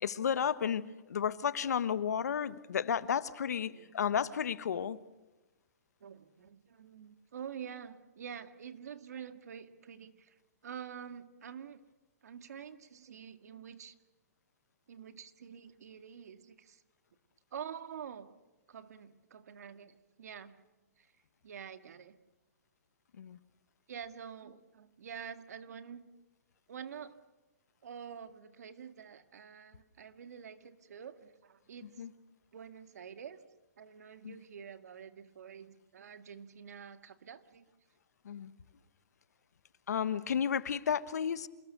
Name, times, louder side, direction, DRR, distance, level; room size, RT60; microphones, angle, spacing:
voice 1, 0.0-5.0 23.2-23.4 32.0-32.1 34.2-34.3 38.2-38.5 39.9-41.5, left 8 dB, 80° left, 14 dB, 1.4 m, -32 dB
voice 2, 6.0-10.4 10.6-11.8 12.2-13.9 14.9-16.8 17.5-18.3 18.7-20.6 21.0-21.1 21.4-22.2 23.9-26.1 26.7-27.2 27.8-32.0 32.5-33.4 33.8-37.6, right 8 dB, 75° right, 10 dB, 2.0 m, -47 dB
27.5 x 19.5 x 6.8 m, 1.1 s
hypercardioid pair, 160°, 9 cm